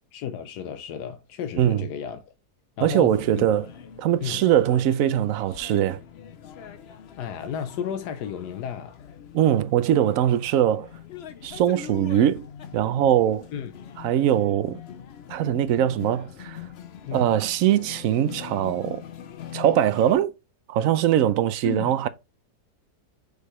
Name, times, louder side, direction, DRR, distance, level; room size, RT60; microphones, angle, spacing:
voice 1, 0.1-2.3 2.8-3.4 4.2-4.4 7.2-9.0 13.5-13.7 17.1-17.3 21.6-22.1, left 8 dB, 85° left, 1.3 m, -33 dB
voice 2, 1.6-1.9 2.8-3.7 4.0-6.0 9.3-10.9 11.4-12.5 12.7-13.5 14.0-14.8 15.3-16.6 17.1-19.0 19.5-20.3 20.7-22.1, right 11 dB, 65° right, 0.9 m, -22 dB
sound 1, 3.0-20.1, left 9 dB, 55° left, 0.7 m, -42 dB
6.6 x 5.0 x 3.1 m
omnidirectional pair, 1.7 m